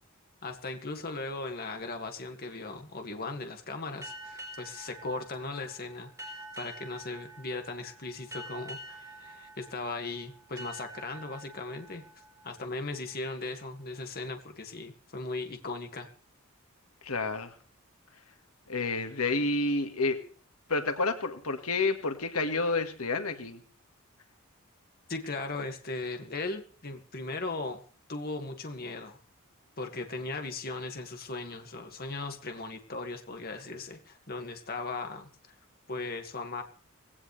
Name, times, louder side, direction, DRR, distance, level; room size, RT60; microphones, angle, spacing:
voice 1, 0.4-12.0 12.4-16.1 25.1-27.8 28.1-29.2 29.8-35.3 35.9-36.6, left 3 dB, 45° left, 5 dB, 2.1 m, -38 dB
sound 1, 4.0-13.3, right 1 dB, 15° right, 4.5 m, -47 dB
voice 2, 17.0-17.5 18.7-20.2 20.7-23.6, left 3 dB, 90° left, 7 dB, 2.0 m, -29 dB
19.5 x 17.0 x 3.4 m, 0.42 s
head